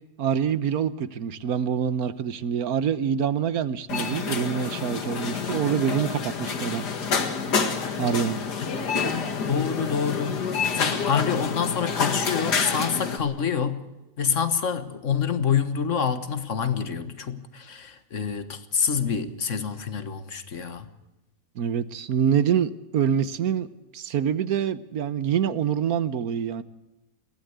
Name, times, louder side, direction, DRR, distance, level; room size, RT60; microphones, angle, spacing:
voice 1, 0.2-6.8 8.0-8.4 21.6-23.7 23.9-26.6, right 8 dB, 65° right, 1.3 m, -25 dB
sound 1, 3.9-13.2, left 5 dB, 80° left, 2.4 m, -28 dB
voice 2, 8.9-10.4 10.7-13.8 14.2-20.8, left 7 dB, 50° left, 1.6 m, -27 dB
22.5 x 16.5 x 8.0 m
omnidirectional pair, 1.7 m